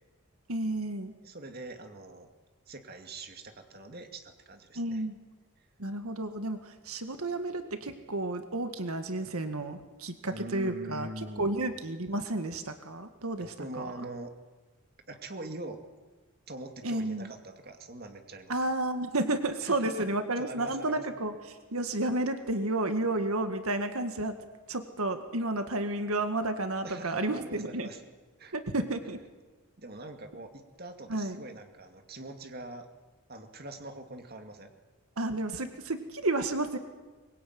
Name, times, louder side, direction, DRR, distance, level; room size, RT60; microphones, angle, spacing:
voice 1, 0.5-1.1 4.8-5.2 5.8-13.9 16.8-17.3 18.5-24.3 24.7-27.9 28.5-29.2 31.1-31.4 35.2-36.8, right 2 dB, 85° right, 8 dB, 1.9 m, -31 dB
voice 2, 1.2-2.3 2.7-5.0 7.1-7.2 10.3-11.6 13.4-14.3 15.1-15.8 16.5-18.5 19.6-19.9 20.4-21.0 26.8-28.0 28.4-28.6 29.8-32.9 33.3-34.7, right 2 dB, 45° right, 6 dB, 2.4 m, -43 dB
23.5 x 22.0 x 9.5 m, 1.2 s
head